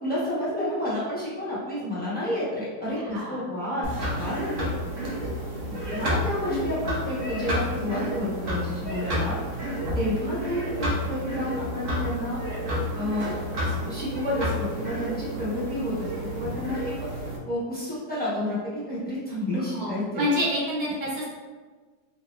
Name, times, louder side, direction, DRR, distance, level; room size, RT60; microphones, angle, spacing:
voice 1, 0.0-4.7 5.2-5.3 5.7-9.4 9.9-12.4 12.9-13.3 13.6-16.1 16.3-17.1 17.5-20.3, left 1 dB, 10° left, -9 dB, 0.6 m, -30 dB
voice 2, 3.0-3.4 19.7-21.2, left 1 dB, 80° right, -6 dB, 1.8 m, -27 dB
sound 1, 3.8-17.4, equal, 55° right, 0.9 m, -30 dB
3.4 x 2.8 x 3.1 m, 1.4 s
omnidirectional pair, 2.0 m